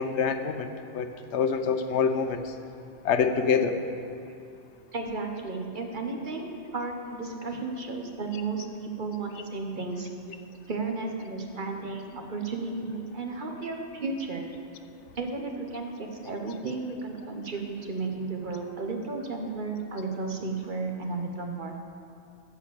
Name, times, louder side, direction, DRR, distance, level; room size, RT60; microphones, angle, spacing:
voice 1, 0.0-2.5 3.0-3.8, left 6 dB, 80° left, 8 dB, 1.0 m, -26 dB
voice 2, 4.9-10.1 10.7-14.4 15.1-21.8, right 3 dB, 50° right, 3 dB, 1.1 m, -33 dB
13.0 x 5.1 x 8.5 m, 2.5 s
omnidirectional pair, 1.1 m